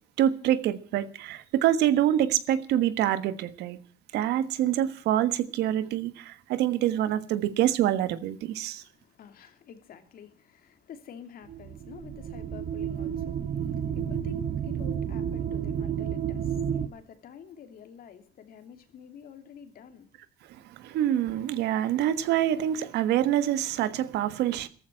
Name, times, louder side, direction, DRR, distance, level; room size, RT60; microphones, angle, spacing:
voice 1, 0.2-3.8 4.1-8.8 20.8-24.7, right 11 dB, 80° right, 1.4 m, -26 dB
voice 2, 8.6-20.1, left 8 dB, 60° left, 2.9 m, -48 dB
sound 1, 11.5-16.9, right 8 dB, 50° right, 1.1 m, -31 dB
14.5 x 13.5 x 7.6 m
cardioid pair, 110°, 17 cm